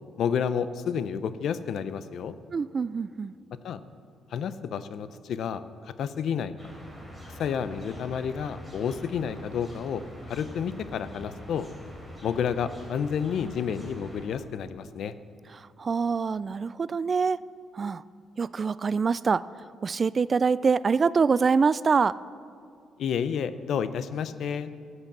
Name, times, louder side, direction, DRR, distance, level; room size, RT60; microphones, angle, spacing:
voice 1, 0.2-2.3 3.6-3.8 4.3-6.5 7.4-11.7 12.2-15.1 23.0-24.7, left 7 dB, 70° left, 13 dB, 0.6 m, -30 dB
voice 2, 2.5-3.3 15.5-17.4 17.7-18.0 18.4-19.4 19.8-22.2, right 5 dB, 40° right, 18 dB, 0.3 m, -25 dB
sound 1, 6.6-14.3, equal, 10° left, 4.0 m, -44 dB
14.0 x 8.1 x 7.3 m, 2.4 s
cardioid pair, 90°, 0 cm